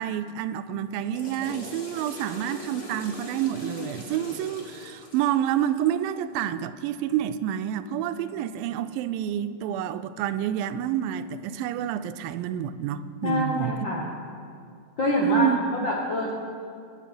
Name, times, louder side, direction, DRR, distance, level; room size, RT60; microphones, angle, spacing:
voice 1, 0.0-13.9 15.2-15.6, right 10 dB, 85° right, 11 dB, 2.3 m, -28 dB
Water / Toilet flush, 0.9-6.1, left 1 dB, 30° left, 1.4 m, -42 dB
voice 2, 13.2-14.0 15.0-15.5 15.8-16.3, left 1 dB, 75° left, -2 dB, 1.0 m, -26 dB
23.5 x 8.1 x 5.1 m, 2.4 s
omnidirectional pair, 4.0 m